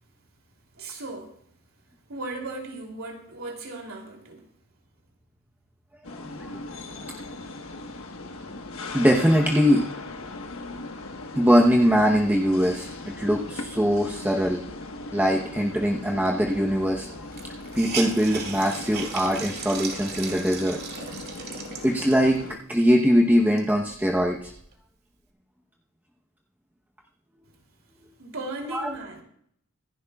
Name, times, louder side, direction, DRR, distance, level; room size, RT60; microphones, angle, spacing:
voice 1, 0.7-1.4 2.1-4.5 28.2-29.2, right 2 dB, 70° right, 3.1 m, -36 dB
sound 1, 6.0-22.6, left 2 dB, 65° left, 1.4 m, -39 dB
voice 2, 6.1-6.6 8.9-9.9 11.3-14.6 15.1-17.1 17.7-20.8 21.8-24.5 28.7-28.9, equal, 10° right, 0.9 m, -22 dB
Hiss, 16.5-16.6 16.8-16.9 17.3-22.4 22.9-23.0 23.4-24.8, right 5 dB, 45° right, 2.4 m, -37 dB
25.5 x 11.0 x 2.4 m
head